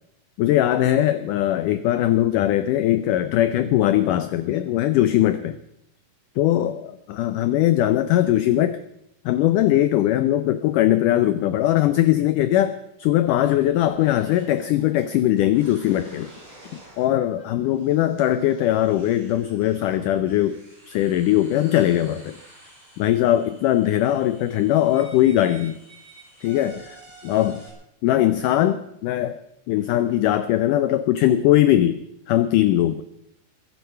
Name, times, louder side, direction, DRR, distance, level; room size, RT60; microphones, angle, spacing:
voice 1, 0.4-5.6 6.4-8.8 9.3-16.3 17.0-20.6 20.9-22.4 23.0-25.8 26.4-27.0 27.2-27.6 28.0-29.4 29.7-32.0 32.3-33.0, left 13 dB, 85° left, 12 dB, 1.8 m, -20 dB
sound 1, 13.2-27.7, right 2 dB, 10° right, 4.7 m, -49 dB
21.0 x 10.5 x 5.6 m, 0.77 s
omnidirectional pair, 4.5 m